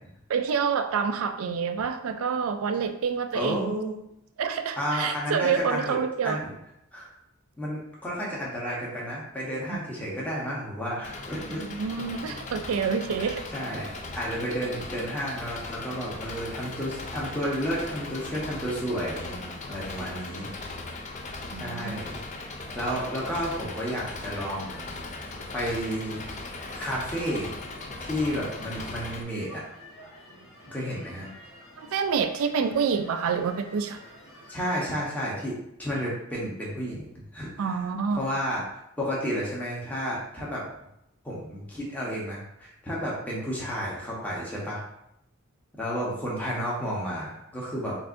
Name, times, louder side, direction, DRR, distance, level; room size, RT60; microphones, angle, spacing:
voice 1, 0.3-3.8 4.4-6.4 9.7-9.8 11.8-13.4 21.5-22.0 31.8-34.0 37.6-38.3, right 6 dB, 75° right, 9 dB, 0.4 m, -27 dB
voice 2, 3.3-4.0 4.8-6.0 6.2-6.4 6.9-7.1 7.6-11.7 12.5-12.6 13.5-13.9 14.1-20.5 21.3-22.2 22.7-24.9 25.5-26.3 26.7-27.5 28.0-29.6 30.7-31.3 34.5-37.1 37.3-37.7 38.1-40.6 41.2-44.8 45.8-48.0, equal, 5° left, -5 dB, 1.0 m, -31 dB
Engine, 11.0-29.2, left 3 dB, 35° left, 0.4 m, -38 dB
sound 1, 24.3-34.9, left 1 dB, 80° left, 1.5 m, -50 dB
6.6 x 2.6 x 2.6 m, 0.81 s
head